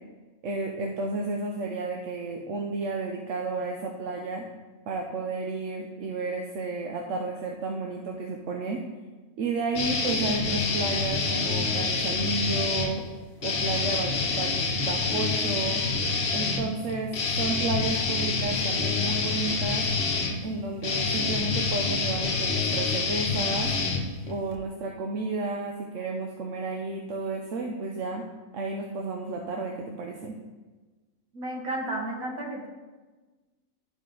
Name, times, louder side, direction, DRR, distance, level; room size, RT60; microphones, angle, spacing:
voice 1, 0.4-4.4 4.9-8.8 9.4-13.0 13.4-15.8 16.3-19.9 20.4-23.7 24.3-28.2 28.5-30.4, right 3 dB, 70° right, 1 dB, 1.0 m, -32 dB
sound 1, 9.7-12.9 13.4-24.5, left 4 dB, 55° left, 1.1 m, -27 dB
voice 2, 31.3-32.7, right 1 dB, 85° right, -1 dB, 1.7 m, -32 dB
11.5 x 4.1 x 3.8 m, 1.3 s
omnidirectional pair, 1.4 m